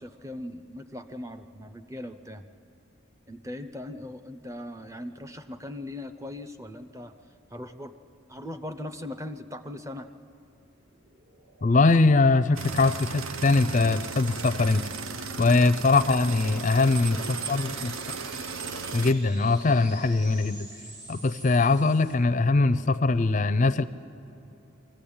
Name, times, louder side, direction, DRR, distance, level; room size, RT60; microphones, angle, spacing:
voice 1, 0.0-2.5 3.3-7.1 7.5-8.0 8.3-10.1 16.7-17.9, left 1 dB, 15° right, 9 dB, 0.7 m, -40 dB
sound 1, 10.6-22.1, right 2 dB, 55° right, 2.0 m, -50 dB
voice 2, 11.6-14.8 15.4-18.2 18.9-20.7 21.1-23.8, left 3 dB, 35° left, 13 dB, 0.4 m, -22 dB
sound 2, 12.5-19.1, right 5 dB, 80° right, 0.7 m, -36 dB
22.5 x 14.5 x 8.7 m, 2.8 s
head